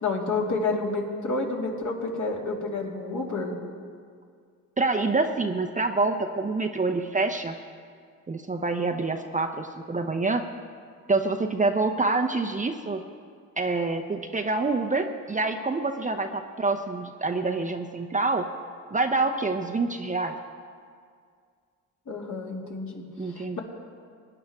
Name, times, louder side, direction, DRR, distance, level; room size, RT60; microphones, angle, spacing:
voice 1, 0.0-3.6 22.1-23.0 23.3-23.6, left 3 dB, 50° left, -1 dB, 2.6 m, -29 dB
voice 2, 4.8-7.6 8.3-10.4 11.1-13.0 13.6-18.5 18.9-20.4 23.2-23.6, right 3 dB, 20° right, 4 dB, 0.7 m, -26 dB
20.5 x 9.7 x 3.6 m, 2.1 s
supercardioid pair, 70°, 37 cm